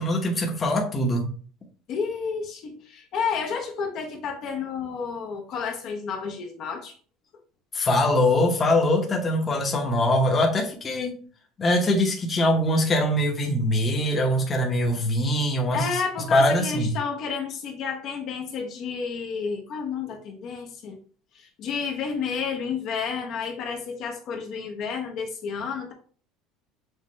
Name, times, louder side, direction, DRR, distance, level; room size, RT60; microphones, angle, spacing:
voice 1, 0.0-1.3 7.7-11.2 11.6-16.0 16.3-16.9, left 1 dB, 20° left, 0 dB, 0.9 m, -22 dB
voice 2, 1.9-6.9 15.7-21.0 21.3-25.9, left 5 dB, 50° left, 2 dB, 0.8 m, -31 dB
6.4 x 2.4 x 3.0 m, 0.43 s
cardioid pair, 155°, 0 cm